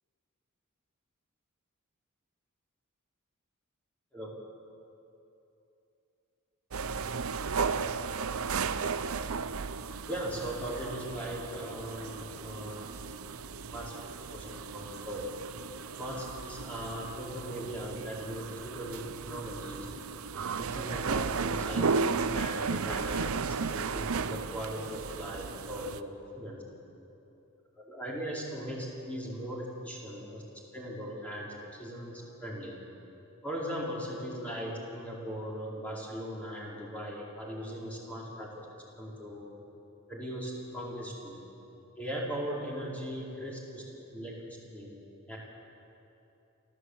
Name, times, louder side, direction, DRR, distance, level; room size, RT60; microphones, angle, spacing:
sound 1, 6.7-26.0, right 5 dB, 75° right, 0.7 m, -35 dB
voice 1, 10.1-12.9 13.7-15.3 16.0-19.8 20.6-26.6 27.8-30.4 30.7-32.8 33.4-38.7 39.0-39.5 40.1-41.4 42.0-43.8 44.1-44.9 45.3-45.4, equal, 5° left, -4 dB, 4.5 m, -39 dB
29.5 x 13.0 x 8.1 m, 2.9 s
head